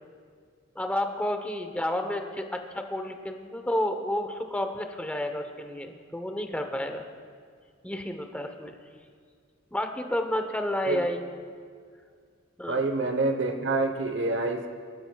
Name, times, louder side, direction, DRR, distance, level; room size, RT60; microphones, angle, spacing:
voice 1, 0.7-7.0 7.8-8.8 9.7-11.2 12.6-12.8, left 1 dB, 5° left, 5 dB, 0.9 m, -31 dB
voice 2, 12.7-14.7, right 2 dB, 70° right, 6 dB, 1.0 m, -27 dB
24.5 x 13.0 x 2.3 m, 2.1 s
head